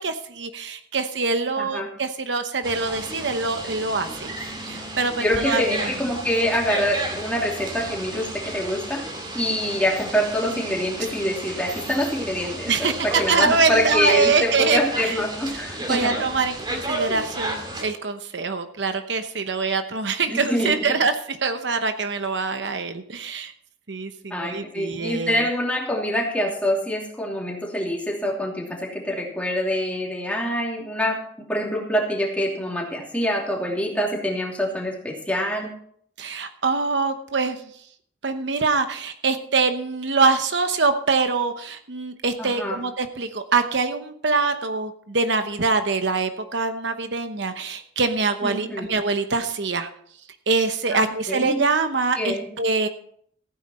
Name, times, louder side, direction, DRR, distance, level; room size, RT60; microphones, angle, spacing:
voice 1, 0.0-4.3 4.7-5.9 12.6-15.2 15.9-23.5 23.9-25.4 36.2-37.6 38.2-49.9 50.5-52.9, right 4 dB, 65° right, 8 dB, 1.0 m, -24 dB
voice 2, 1.6-1.9 5.2-9.0 9.3-16.2 20.3-20.7 24.3-31.2 31.5-35.7 42.4-42.8 48.4-48.9 50.9-51.6 52.2-52.4, equal, 5° left, -2 dB, 2.8 m, -25 dB
sound 1, 2.6-17.8, right 2 dB, 25° right, 2.4 m, -33 dB
15.5 x 9.2 x 4.3 m, 0.63 s
head